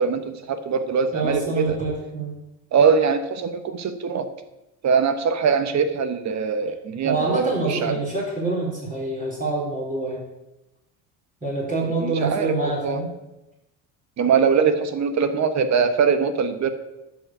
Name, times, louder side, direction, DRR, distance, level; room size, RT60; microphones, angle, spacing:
voice 1, 0.0-1.8 2.7-4.3 4.8-8.0 12.0-13.0 14.2-16.7, right 6 dB, 45° right, 9 dB, 1.4 m, -22 dB
voice 2, 1.1-2.3 7.0-10.2 11.4-13.1, right 3 dB, 20° right, -5 dB, 4.4 m, -26 dB
11.5 x 5.3 x 8.0 m, 0.95 s
cardioid pair, 110°, 37 cm